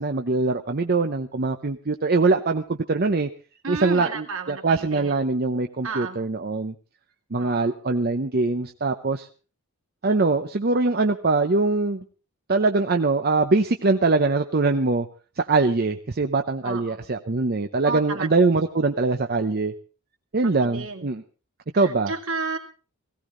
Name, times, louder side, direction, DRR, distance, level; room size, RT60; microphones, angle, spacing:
voice 1, 0.0-3.3 3.7-6.7 7.3-9.3 10.0-12.0 12.5-15.1 15.4-19.7 20.3-21.2 21.7-22.1, right 3 dB, 45° right, 6 dB, 0.7 m, -22 dB
voice 2, 3.6-5.4 5.8-6.2 7.4-7.7 16.6-17.1 17.8-18.3 20.4-21.1 21.8-22.6, right 4 dB, 65° right, 3 dB, 2.4 m, -32 dB
17.5 x 17.0 x 3.8 m, 0.36 s
head